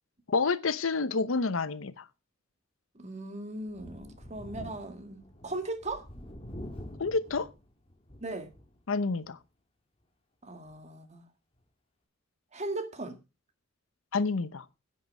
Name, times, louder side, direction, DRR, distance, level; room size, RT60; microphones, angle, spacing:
voice 1, 0.3-2.0 7.0-7.5 8.9-9.4 14.1-14.6, left 4 dB, 90° left, 0.8 m, -28 dB
voice 2, 3.0-6.1 8.2-8.5 10.4-11.3 12.5-13.2, right 2 dB, 35° right, 1.9 m, -38 dB
Thunder, 3.7-8.8 9.2-9.3 10.7-10.8, equal, 30° left, 2.4 m, -46 dB
10.5 x 8.6 x 5.3 m
head